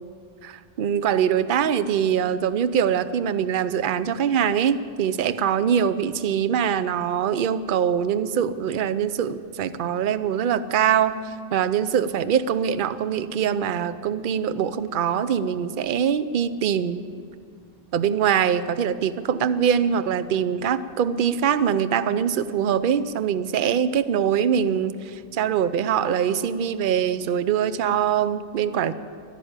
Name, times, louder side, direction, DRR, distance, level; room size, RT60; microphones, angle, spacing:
voice 1, 0.4-17.0 17.9-28.9, right 8 dB, 55° right, 14 dB, 0.7 m, -23 dB
13.0 x 12.5 x 8.8 m, 2.3 s
omnidirectional pair, 1.2 m